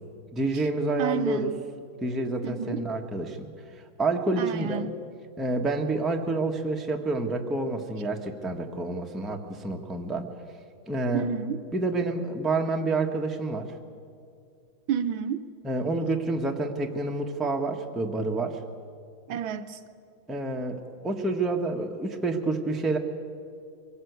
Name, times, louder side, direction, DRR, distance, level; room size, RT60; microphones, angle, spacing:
voice 1, 0.3-1.5 2.0-3.5 3.7-4.8 5.4-10.3 10.9-11.3 11.7-13.8 15.6-18.6 20.3-23.0, right 2 dB, ahead, 2 dB, 0.9 m, -28 dB
voice 2, 1.0-1.5 2.4-2.8 4.4-4.9 11.1-11.6 14.9-15.4 17.4-17.5 19.3-19.8, right 8 dB, 75° right, 10 dB, 1.5 m, -30 dB
23.0 x 17.5 x 8.2 m, 2.3 s
omnidirectional pair, 2.3 m